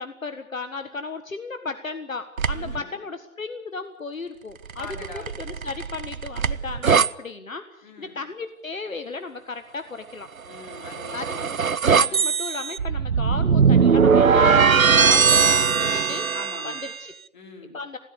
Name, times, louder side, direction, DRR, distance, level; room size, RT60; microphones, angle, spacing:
voice 1, 0.0-10.3 11.1-11.4 11.9-16.2 16.6-17.1 17.7-18.0, left 4 dB, 70° left, 9 dB, 1.6 m, -35 dB
sound 1, 2.4-2.8 4.7-7.1 10.6-17.0, right 6 dB, 75° right, 0.8 m, -20 dB
voice 2, 2.5-3.0 4.8-5.3 7.8-8.2 10.5-11.6 12.0-12.3 16.3-16.8 17.3-17.8, left 3 dB, 35° left, 2 dB, 4.6 m, -42 dB
21.0 x 17.0 x 8.4 m, 0.82 s
figure-of-eight pair, 150°, 42 cm